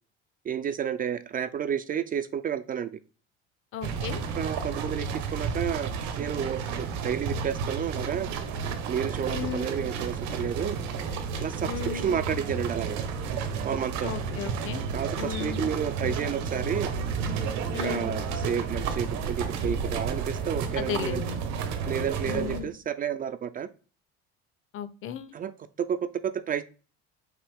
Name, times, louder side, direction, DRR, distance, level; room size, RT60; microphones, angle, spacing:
voice 1, 0.5-3.0 4.4-8.3 8.9-10.8 11.4-13.0 13.6-14.1 14.9-16.9 17.8-21.2 21.8-23.7 25.3-25.5 25.8-26.0 26.2-26.6, right 8 dB, 30° right, 13 dB, 0.4 m, -31 dB
voice 2, 3.7-4.2 9.3-9.7 11.6-12.2 14.0-14.8 15.2-15.6 17.7-18.1 20.8-21.5 22.3-22.7 24.7-25.3, left 9 dB, 45° left, 14 dB, 0.6 m, -35 dB
sound 1, 3.8-22.6, right 5 dB, 70° right, 1.1 m, -32 dB
5.8 x 2.6 x 3.5 m, 0.37 s
supercardioid pair, 100°, 30 cm